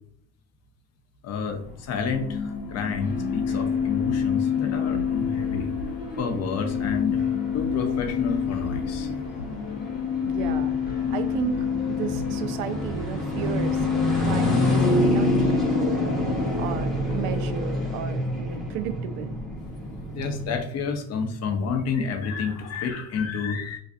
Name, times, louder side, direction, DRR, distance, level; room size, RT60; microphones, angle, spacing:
voice 1, 1.2-5.7 6.2-7.2 7.5-9.1 20.1-23.8, left 5 dB, 35° left, 5 dB, 0.6 m, -29 dB
sound 1, 1.6-20.6, equal, ahead, 0.7 m, -29 dB
sound 2, 2.1-16.4, left 7 dB, 60° left, 0.9 m, -28 dB
sound 3, 3.0-19.7, left 3 dB, 20° left, 1.0 m, -42 dB
voice 2, 10.2-10.8 11.1-13.9 14.1-16.1 16.6-19.3, right 9 dB, 65° right, 10 dB, 0.5 m, -33 dB
2.4 x 2.3 x 2.4 m, 0.67 s
hypercardioid pair, 80°, 45 cm